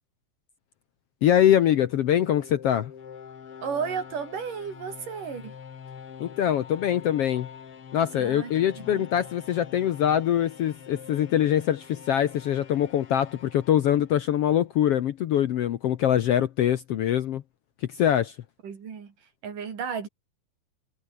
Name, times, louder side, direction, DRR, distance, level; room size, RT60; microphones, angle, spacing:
voice 1, 1.2-2.9 6.2-7.5 7.9-17.4 17.9-18.3, left 10 dB, 65° left, 1.6 m, -23 dB
sound 1, 1.5-14.5, left 7 dB, 50° left, 2.8 m, -45 dB
voice 2, 3.6-5.6 8.2-9.1 18.6-19.1 19.4-20.1, right 6 dB, 80° right, 5.2 m, -33 dB
omnidirectional pair, 3.7 m